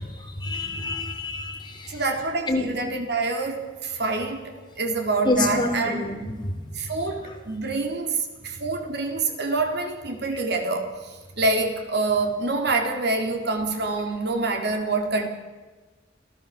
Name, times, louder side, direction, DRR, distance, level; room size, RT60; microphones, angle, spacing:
voice 1, 0.4-1.6 2.5-2.6 5.3-5.7 6.0-6.3, left 2 dB, 25° left, 2 dB, 4.1 m, -26 dB
voice 2, 1.9-6.1 6.7-15.3, right 3 dB, 55° right, 4 dB, 3.7 m, -26 dB
27.0 x 16.5 x 7.5 m, 1.3 s
head